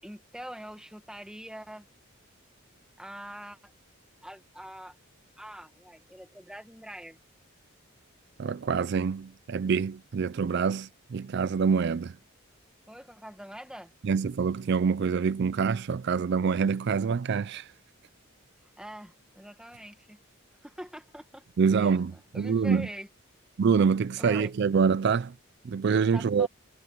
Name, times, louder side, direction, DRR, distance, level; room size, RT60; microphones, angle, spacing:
voice 1, 0.0-1.8 3.0-3.7 4.2-5.0 5.4-7.2 12.9-13.9 18.6-20.2 20.6-21.4 21.7-23.1 24.2-24.5 26.1-26.5, equal, 5° right, 1.3 m, -44 dB
voice 2, 8.4-12.1 14.0-17.7 21.6-22.9 23.6-25.3 25.6-26.5, right 5 dB, 50° right, 0.4 m, -26 dB
head